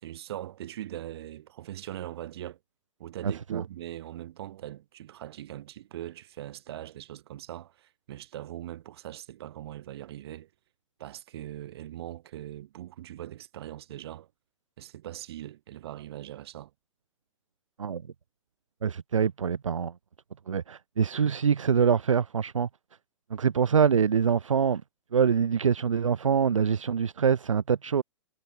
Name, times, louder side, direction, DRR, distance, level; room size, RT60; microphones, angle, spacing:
voice 1, 0.0-2.6 3.0-10.5 11.0-14.3 14.8-16.7, right 13 dB, 50° right, 2.3 m, -41 dB
voice 2, 3.2-3.6 17.8-18.0 18.8-19.9 20.5-22.7 23.3-24.8 25.1-28.0, right 7 dB, 75° right, 0.4 m, -25 dB
figure-of-eight pair, 105°, 16 cm